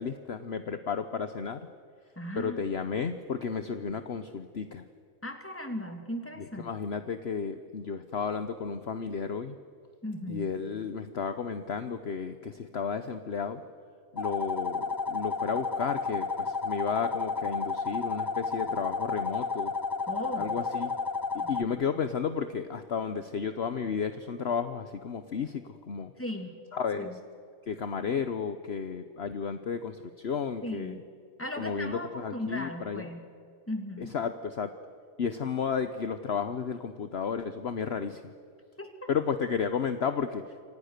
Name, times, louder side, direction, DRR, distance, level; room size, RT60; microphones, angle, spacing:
voice 1, 0.0-1.6 2.4-4.8 6.4-9.5 10.3-13.6 14.1-19.7 20.4-20.9 21.3-26.1 26.7-27.2 27.7-31.0 31.6-33.1 34.0-34.7 35.2-38.3 39.1-40.6, left 6 dB, 50° left, 9 dB, 1.2 m, -33 dB
voice 2, 2.2-2.6 5.2-6.7 10.0-10.5 20.1-20.5 21.4-21.7 26.2-26.5 27.0-27.1 30.6-31.0 31.4-33.2 33.7-34.1 38.8-39.1, left 1 dB, 10° left, 4 dB, 2.9 m, -37 dB
sound 1, 14.2-21.6, left 4 dB, 30° left, 0.4 m, -32 dB
28.5 x 25.5 x 6.7 m, 2.3 s
omnidirectional pair, 1.4 m